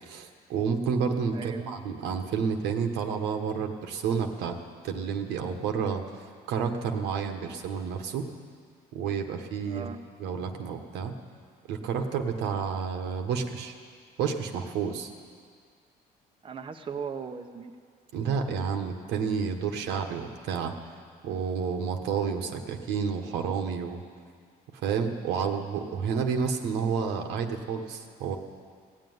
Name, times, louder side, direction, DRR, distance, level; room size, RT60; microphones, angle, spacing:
voice 1, 0.0-4.6 4.8-6.0 6.5-8.3 8.9-9.9 10.2-11.1 11.7-13.7 14.2-15.1 18.1-20.7 21.2-24.0 24.7-28.4, right 6 dB, 90° right, 4 dB, 1.3 m, -30 dB
voice 2, 1.3-1.9 9.6-10.0 16.4-17.7, right 6 dB, 30° right, 5 dB, 0.8 m, -38 dB
17.0 x 7.6 x 9.4 m, 2.1 s
cardioid pair, 110°, 17 cm